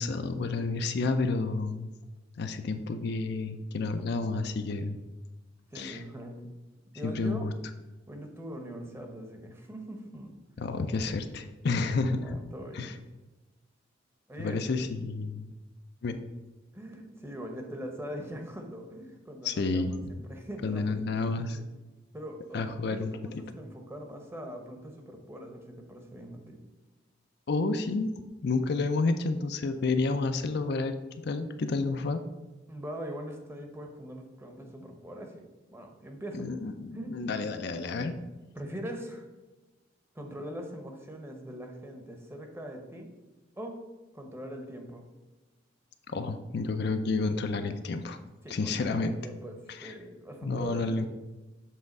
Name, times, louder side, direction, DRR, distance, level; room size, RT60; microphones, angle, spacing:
voice 1, 0.0-1.9 2.4-5.0 5.8-6.0 7.0-7.5 10.6-12.4 12.7-12.9 14.4-15.5 16.0-16.2 19.4-20.1 20.6-21.6 22.5-23.4 27.5-28.1 28.4-31.0 31.2-32.2 36.3-38.1 46.1-48.2 48.5-49.1 49.8-49.9 50.4-51.1, left 3 dB, 60° left, 8 dB, 0.4 m, -30 dB
voice 2, 5.7-6.5 6.9-7.5 8.1-10.4 12.1-13.0 14.3-14.6 16.7-21.7 22.1-26.6 32.7-36.5 36.9-37.2 38.5-39.3 40.1-43.1 43.6-43.8 44.1-45.1 48.4-51.0, equal, 15° right, 3 dB, 0.8 m, -42 dB
7.4 x 3.4 x 5.3 m, 1.1 s
head